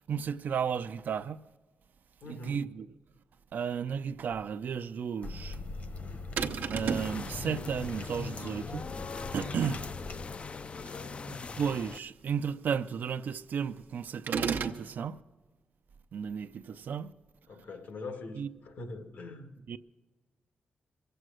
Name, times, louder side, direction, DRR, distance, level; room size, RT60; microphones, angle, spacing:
voice 1, 0.1-1.4 2.3-2.9 3.5-5.6 6.7-8.8 9.3-9.8 11.6-15.2 16.1-17.1 18.4-18.5 19.7-19.8, right 7 dB, 70° right, 0.5 m, -33 dB
voice 2, 2.2-2.6 10.7-11.2 17.5-19.5, left 2 dB, 80° left, 1.7 m, -43 dB
sound 1, 5.2-10.4, left 3 dB, 55° left, 1.2 m, -42 dB
sound 2, 6.4-7.2 14.3-14.8, right 6 dB, 90° right, 0.8 m, -31 dB
sound 3, 6.8-12.0, left 4 dB, 35° left, 0.4 m, -41 dB
23.0 x 7.9 x 6.2 m
wide cardioid pair, 115°, 3 cm